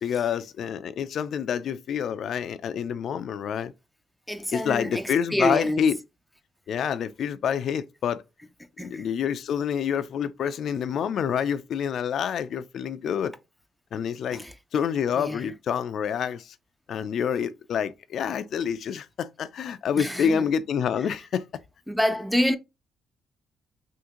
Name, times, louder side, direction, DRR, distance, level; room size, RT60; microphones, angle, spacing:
voice 1, 0.0-3.7 4.5-6.0 6.7-8.2 8.8-13.3 13.9-14.4 14.7-16.5 16.9-21.5, left 8 dB, 65° left, 0.3 m, -27 dB
voice 2, 4.3-5.9 8.8-9.1 14.3-14.5 15.2-15.5 20.0-20.5 21.0-21.1 21.9-22.6, equal, ahead, 0.5 m, -27 dB
3.6 x 2.5 x 2.8 m
cardioid pair, 90°, 0 cm